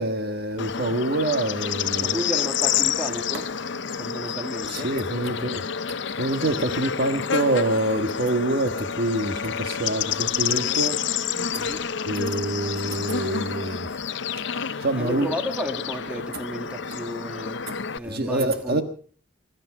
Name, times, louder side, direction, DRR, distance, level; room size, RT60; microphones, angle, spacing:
voice 1, 0.0-2.2 3.9-4.0 4.7-5.6 5.9-11.0 11.5-11.6 12.1-13.9 14.8-15.3 17.7-17.8 18.0-18.8, right 1 dB, 55° right, 1.5 m, -26 dB
Bird / Insect, 0.6-18.0, left 7 dB, 65° left, 0.6 m, -29 dB
voice 2, 2.0-3.5 4.0-5.3 11.5-11.8 14.9-17.7 17.9-18.8, equal, 5° right, 1.9 m, -33 dB
22.5 x 12.0 x 4.8 m
head